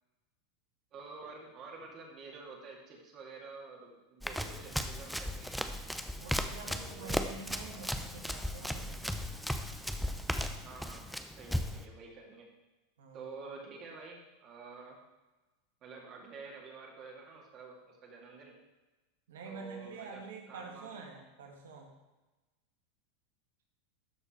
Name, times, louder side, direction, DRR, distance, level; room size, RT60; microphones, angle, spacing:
voice 1, 0.9-5.6 6.6-7.3 10.6-11.1 11.3-12.5 13.1-15.0 15.8-18.6 19.4-20.2 20.5-21.1, right 4 dB, 40° right, -1 dB, 2.3 m, -49 dB
Run, 4.2-11.9, equal, ahead, 0.6 m, -36 dB
voice 2, 6.2-9.0 13.0-13.3 19.3-21.9, right 4 dB, 85° right, 1 dB, 1.8 m, -47 dB
12.5 x 4.4 x 4.4 m, 1.1 s
hypercardioid pair, 110°, 0 cm